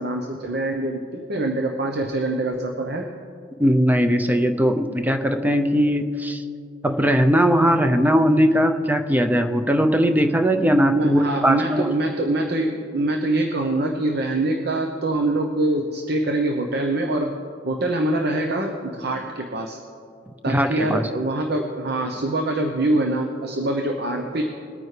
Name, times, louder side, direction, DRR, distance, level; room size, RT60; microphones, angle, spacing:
voice 1, 0.0-3.1 10.9-17.3 17.7-19.8 20.4-24.4, right 2 dB, 60° right, 2 dB, 0.9 m, -24 dB
voice 2, 3.6-6.4 6.8-11.9 20.5-21.0, equal, 10° right, 6 dB, 0.6 m, -19 dB
21.5 x 9.1 x 3.3 m, 2.4 s
head